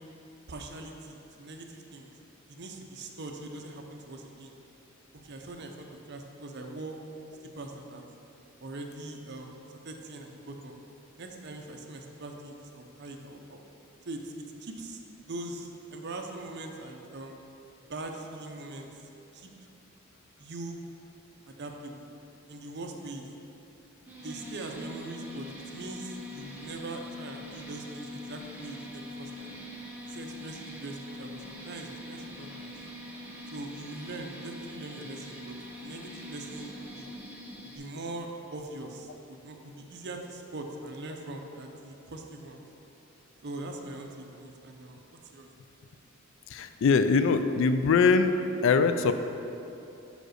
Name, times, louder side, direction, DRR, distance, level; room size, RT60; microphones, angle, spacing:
voice 1, 0.5-2.1 2.5-4.5 5.1-7.0 7.6-8.0 8.6-9.5 9.8-10.8 11.2-13.6 14.0-14.3 14.6-17.4 17.9-19.5 20.4-20.8 21.5-22.1 22.5-23.3 24.2-29.5 30.0-32.7 33.5-37.1 37.6-42.7 43.4-45.5, right 2 dB, 55° right, 3 dB, 0.6 m, -42 dB
sound 1, 24.1-37.8, equal, 10° right, 1.0 m, -43 dB
voice 2, 46.5-48.3 48.6-49.1, left 5 dB, 60° left, 9 dB, 0.3 m, -22 dB
5.1 x 5.1 x 6.4 m, 2.8 s
head